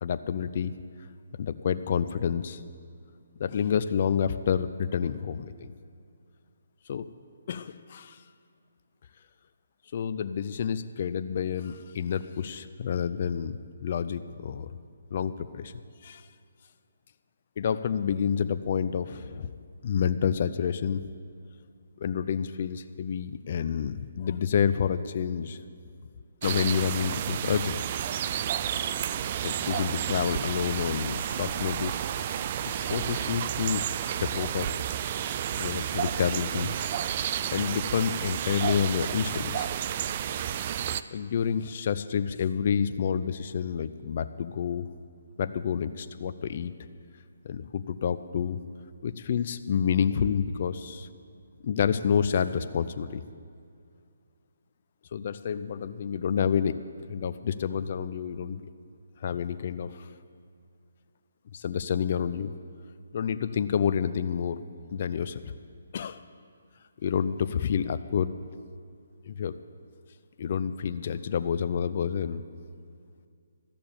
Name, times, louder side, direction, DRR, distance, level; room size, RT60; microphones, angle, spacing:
voice 1, 0.0-0.7 1.4-2.6 3.4-5.7 6.9-7.1 7.5-8.2 9.9-14.7 15.1-15.7 16.0-16.2 17.6-19.5 19.8-21.0 22.0-25.6 26.4-27.8 29.4-32.0 32.9-33.8 34.2-34.8 35.6-36.7 37.5-39.7 41.1-44.9 45.4-46.7 47.4-48.6 49.0-51.1 51.6-53.2 55.1-56.8 57.1-58.7 59.2-60.1 61.5-62.5 63.1-64.6 64.9-65.5 65.9-66.2 67.0-68.4 69.3-69.6 70.4-72.4, left 7 dB, 45° left, 11 dB, 0.5 m, -29 dB
sound 1, 26.4-41.0, right 9 dB, 35° right, 0.3 m, -31 dB
13.0 x 6.8 x 8.6 m, 2.3 s
hypercardioid pair, 155°, 0 cm